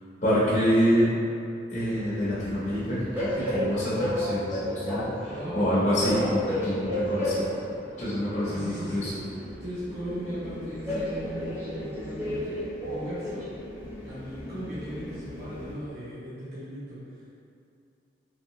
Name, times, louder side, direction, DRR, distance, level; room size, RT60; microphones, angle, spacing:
voice 1, 0.2-1.1 1.7-7.5 8.0-9.1, equal, 40° left, -10 dB, 0.6 m, -26 dB
Train, 1.8-15.7, left 1 dB, 10° right, 0.7 m, -33 dB
voice 2, 5.3-5.9 8.5-9.1 9.6-13.4 14.0-17.0, right 1 dB, 55° right, -11 dB, 0.6 m, -38 dB
3.0 x 2.8 x 2.8 m, 2.6 s
head